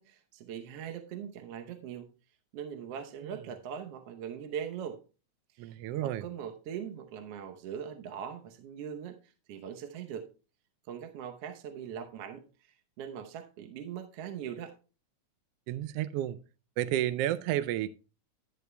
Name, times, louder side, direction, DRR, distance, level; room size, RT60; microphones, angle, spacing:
voice 1, 0.0-2.1 2.5-5.0 5.5-5.8 6.0-10.3 10.9-14.7, right 8 dB, 65° right, 1.7 m, -41 dB
voice 2, 5.6-6.2 15.7-16.4 16.8-17.9, right 13 dB, 90° right, 1.3 m, -31 dB
11.5 x 11.0 x 2.2 m
omnidirectional pair, 3.3 m